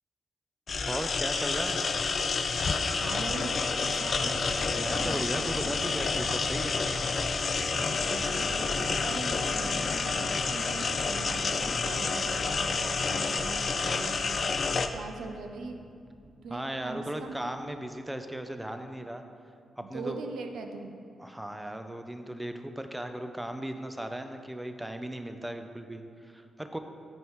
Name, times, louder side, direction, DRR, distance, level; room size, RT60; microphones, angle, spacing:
sound 1, 0.7-14.9, left 4 dB, 55° left, 0.3 m, -29 dB
voice 1, 0.9-1.8 4.7-6.8 16.5-19.3 19.8-20.2 21.2-26.8, right 1 dB, 10° right, 7 dB, 0.5 m, -36 dB
voice 2, 3.0-4.4 7.6-14.5 14.9-15.8 16.4-17.4 19.8-20.9, right 3 dB, 80° right, 4 dB, 0.5 m, -41 dB
sound 2, 4.0-17.7, equal, 30° left, 1.4 m, -43 dB
7.3 x 5.3 x 3.1 m, 2.3 s
cardioid pair, 60°, 0 cm